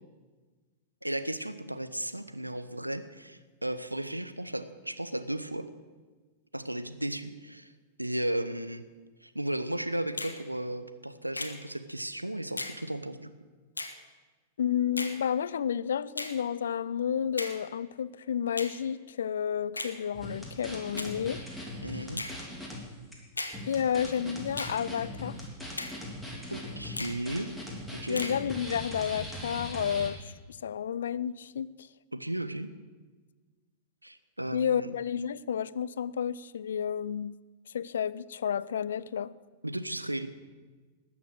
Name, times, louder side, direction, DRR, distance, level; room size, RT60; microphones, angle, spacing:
voice 1, 1.0-5.7 6.5-7.7 8.0-8.8 9.2-13.3 21.8-22.3 26.5-27.5 27.9-28.2 32.1-32.7 34.0-34.9 39.6-40.3, right 1 dB, 90° right, 0.8 m, -35 dB
Finger snapping, 10.2-10.4 11.3-11.6 12.6-12.8 13.8-14.0 15.0-15.2 16.2-16.4 17.4-17.6 18.6-18.8 19.7-20.0 21.0-21.1 22.2-22.4 23.4-23.6 24.6-24.8 25.8-26.0 27.0-27.2 28.2-28.4, left 2 dB, 80° left, 1.1 m, -36 dB
voice 2, 14.6-21.4 23.7-25.4 28.1-31.9 34.5-37.3 37.7-39.3, left 8 dB, 65° left, 0.4 m, -31 dB
sound 1, 20.1-22.8 23.1-23.2 23.5-30.1, left 1 dB, ahead, 3.0 m, -40 dB
19.5 x 7.2 x 6.3 m
figure-of-eight pair, 95°, 0 cm